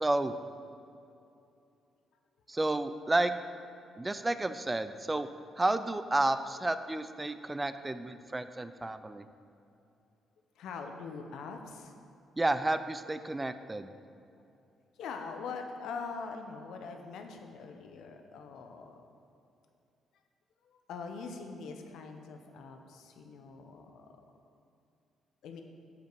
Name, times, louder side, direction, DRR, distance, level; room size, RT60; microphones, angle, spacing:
voice 1, 0.0-0.4 2.5-3.3 4.0-5.3 5.6-9.2 12.4-13.9, right 2 dB, 15° right, 12 dB, 0.3 m, -31 dB
voice 2, 10.5-11.9 14.9-19.0 20.6-24.1 25.4-25.6, left 5 dB, 80° left, 4 dB, 0.7 m, -43 dB
7.1 x 5.1 x 4.6 m, 2.6 s
cardioid pair, 90°, 0 cm